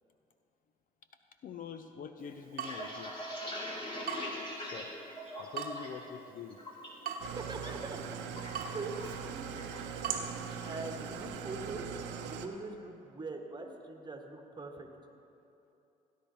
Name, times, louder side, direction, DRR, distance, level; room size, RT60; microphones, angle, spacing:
voice 1, 1.4-3.1 4.5-4.9 5.4-6.6, left 6 dB, 40° left, 8 dB, 0.6 m, -45 dB
Water tap faucet / Drip, 2.2-11.4, right 6 dB, 45° right, 1.1 m, -44 dB
sound 1, 2.4-6.0 6.4-6.9 7.3-7.7 8.0-9.2 9.6-9.8 10.1-10.6, equal, 25° left, 2.5 m, -42 dB
voice 2, 7.0-8.1 8.7-9.5 10.6-11.9 12.2-14.9, right 3 dB, 20° right, 3 dB, 1.5 m, -42 dB
Engine starting / Idling, 7.2-12.5, right 7 dB, 60° right, 0.8 m, -41 dB
17.5 x 10.5 x 2.9 m, 2.8 s
figure-of-eight pair, 50°, 21 cm